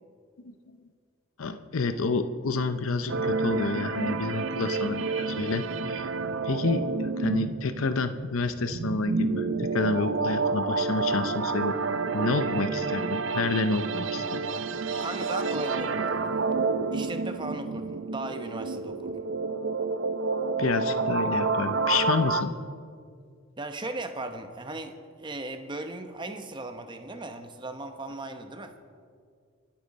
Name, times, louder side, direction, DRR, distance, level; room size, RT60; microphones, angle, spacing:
voice 1, 0.4-0.8 1.4-6.1 6.4-11.8 12.1-14.4 14.9-15.1 20.6-22.5, left 3 dB, 80° left, 10 dB, 0.7 m, -29 dB
sound 1, 3.1-22.4, right 4 dB, 65° right, 0.6 m, -29 dB
voice 2, 15.0-16.4 16.9-19.2 23.6-28.7, right 2 dB, 20° right, 7 dB, 0.9 m, -37 dB
25.0 x 8.7 x 4.2 m, 2.2 s
head